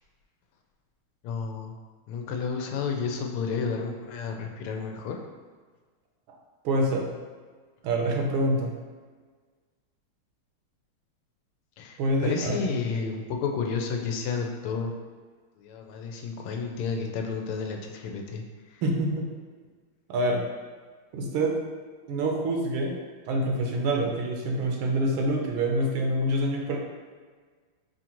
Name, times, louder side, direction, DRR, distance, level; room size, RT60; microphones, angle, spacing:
voice 1, 1.2-1.7 2.1-5.2 11.8-14.9 15.6-18.4 18.7-18.8, left 5 dB, 90° left, 3 dB, 1.5 m, -31 dB
voice 2, 6.6-7.1 7.8-8.7 12.0-12.8 18.8-19.3 20.1-20.4 21.1-21.5 22.1-22.9 23.3-26.8, right 1 dB, 75° right, 1 dB, 1.5 m, -26 dB
5.6 x 2.5 x 2.9 m, 1.5 s
omnidirectional pair, 2.4 m